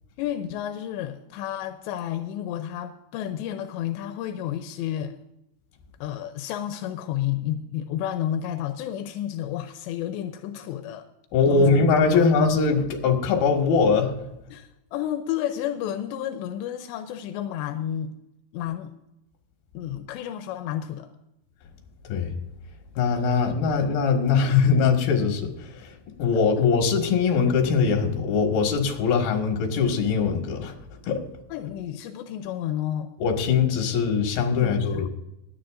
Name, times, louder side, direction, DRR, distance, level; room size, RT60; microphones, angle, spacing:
voice 1, 0.2-5.2 6.0-11.1 11.4-11.7 12.1-12.3 14.5-18.1 18.5-18.9 19.7-21.1 31.5-33.1 34.6-35.1, left 11 dB, 85° left, 2.9 m, -31 dB
voice 2, 11.3-14.1 22.1-22.3 23.0-25.9 26.2-30.7 31.0-31.2 33.2-35.1, left 5 dB, 65° left, 3.4 m, -21 dB
23.5 x 9.9 x 2.5 m
omnidirectional pair, 5.0 m